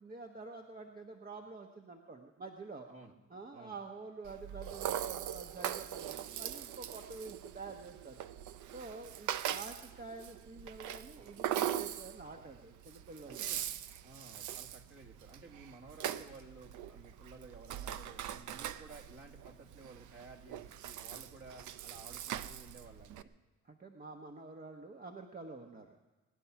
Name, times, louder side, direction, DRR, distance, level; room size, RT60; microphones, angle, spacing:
voice 1, 0.0-2.9 3.3-8.2 8.7-13.5 23.6-26.0, right 3 dB, 30° right, 3 dB, 1.2 m, -48 dB
Rattle (instrument), 4.3-23.2, right 11 dB, 80° right, 0.7 m, -41 dB
voice 2, 13.3-13.7 14.0-23.3, right 3 dB, 45° right, 2 dB, 2.5 m, -54 dB
21.0 x 10.0 x 5.9 m, 1.2 s
cardioid pair, 90°, 30 cm